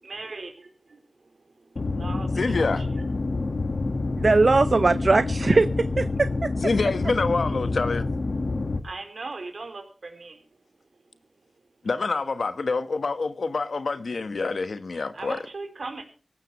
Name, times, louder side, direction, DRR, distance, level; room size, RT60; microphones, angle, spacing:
voice 1, 0.0-2.9 3.6-4.1 8.8-10.5 15.1-16.0, right 3 dB, 80° right, 4.3 m, -39 dB
sound 1, 1.8-8.8, left 3 dB, 65° left, 1.7 m, -27 dB
voice 2, 2.4-2.8 6.6-8.1 11.8-15.4, left 4 dB, 85° left, 1.3 m, -26 dB
voice 3, 4.2-6.5, right 3 dB, 65° right, 0.6 m, -20 dB
18.5 x 15.5 x 3.2 m
cardioid pair, 45°, 0 cm